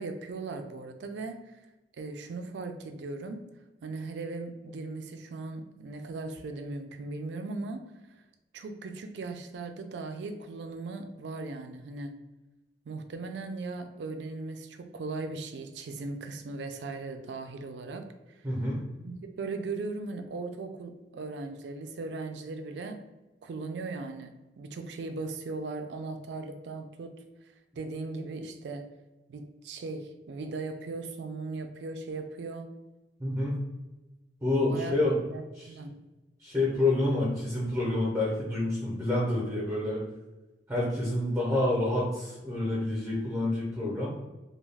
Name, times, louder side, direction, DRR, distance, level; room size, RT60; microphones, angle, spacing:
voice 1, 0.0-1.6 2.0-3.4 3.8-7.8 8.5-12.2 12.9-18.1 19.0-23.0 23.4-27.1 27.7-28.9 29.3-32.7 34.6-34.9 35.3-36.0, right 3 dB, 70° right, 7 dB, 0.3 m, -38 dB
voice 2, 18.4-18.8 33.2-33.6 34.4-35.2 35.6-35.7 36.4-40.0 40.7-44.1, left 2 dB, 15° right, -5 dB, 0.6 m, -28 dB
2.3 x 2.3 x 3.2 m, 1.1 s
head